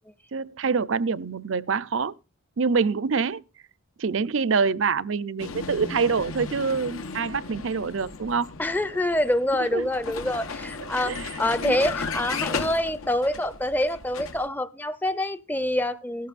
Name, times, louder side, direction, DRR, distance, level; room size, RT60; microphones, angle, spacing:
voice 1, 0.3-2.1 2.6-3.4 4.0-8.5 9.6-9.9 11.0-11.8, right 5 dB, 65° right, 0.5 m, -26 dB
Vehicle, 5.4-14.5, left 4 dB, 85° left, 1.1 m, -35 dB
voice 2, 8.6-16.3, left 1 dB, 10° left, 0.5 m, -26 dB
16.5 x 14.0 x 2.5 m
head